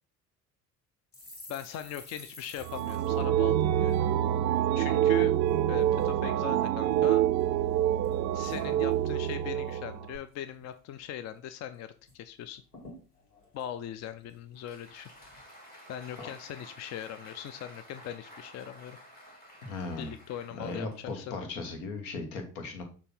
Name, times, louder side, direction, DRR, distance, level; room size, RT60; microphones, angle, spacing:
sound 1, 1.1-4.7 5.0-5.2 5.5-6.1 6.6-7.4 7.7-9.4 9.7-9.9 10.2-10.7 11.1-11.2 11.5-12.2 12.4-12.5 12.7-14.6 15.1-15.4, left 2 dB, 85° left, 1.9 m, -52 dB
voice 1, 1.5-4.0 4.7-5.3 5.7-7.3 8.3-12.6 13.5-15.1 15.9-19.0 20.0-21.3, left 10 dB, 35° left, 11 dB, 0.5 m, -40 dB
sound 2, 2.6-10.2, right 12 dB, 40° right, 0.4 m, -26 dB
Applause, 14.4-21.5, equal, 20° left, 3.1 m, -52 dB
voice 2, 19.6-20.1 20.6-22.8, left 3 dB, 65° left, 5 dB, 1.6 m, -37 dB
6.7 x 3.0 x 5.5 m, 0.38 s
figure-of-eight pair, 60°, 46 cm